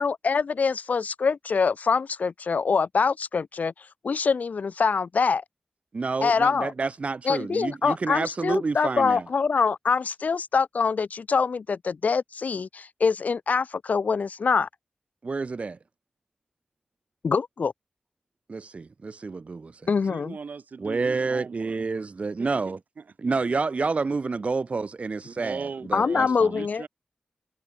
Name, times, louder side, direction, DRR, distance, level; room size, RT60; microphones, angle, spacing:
voice 1, 0.0-3.7 4.0-5.4 6.2-6.7 7.2-14.7 17.2-17.7 19.9-20.4 25.9-26.8, left 5 dB, 70° left, 0.6 m, -24 dB
voice 2, 5.9-9.2 15.2-15.8 18.5-19.8 20.8-22.8 23.2-26.6, right 4 dB, 50° right, 0.7 m, -29 dB
voice 3, 20.0-21.8 22.4-22.5 23.0-23.4 25.2-26.9, right 5 dB, 80° right, 3.7 m, -39 dB
wide cardioid pair, 95°, 3 cm